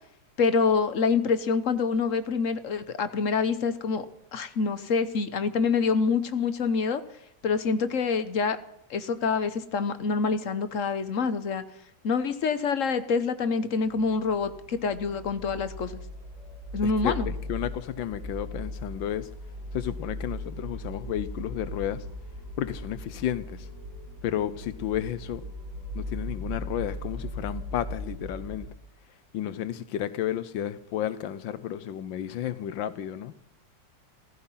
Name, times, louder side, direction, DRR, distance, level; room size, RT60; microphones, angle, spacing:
voice 1, 0.4-4.1 4.3-7.0 7.4-8.6 8.9-11.6 12.0-16.0 16.7-17.3, left 5 dB, 50° left, 1.2 m, -26 dB
sound 1, 13.9-28.7, left 1 dB, 30° right, 7.2 m, -38 dB
voice 2, 16.8-19.3 19.7-22.0 22.6-23.7 24.2-25.4 25.9-28.7 29.3-33.3, left 11 dB, 85° left, 1.5 m, -32 dB
15.5 x 15.0 x 5.7 m
omnidirectional pair, 2.0 m